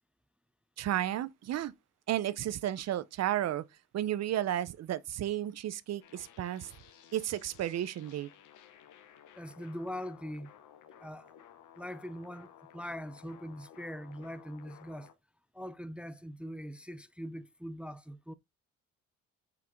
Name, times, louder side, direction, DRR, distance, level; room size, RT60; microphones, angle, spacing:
voice 1, 0.8-1.7 2.1-3.6 3.9-6.7 7.1-8.3, right 12 dB, 60° right, 0.6 m, -33 dB
sound 1, 6.0-15.1, left 9 dB, 85° left, 1.0 m, -56 dB
voice 2, 9.4-10.5 11.0-11.3 11.8-15.1 15.5-18.3, equal, 5° right, 0.4 m, -42 dB
5.9 x 4.5 x 3.6 m
cardioid pair, 90°, 30 cm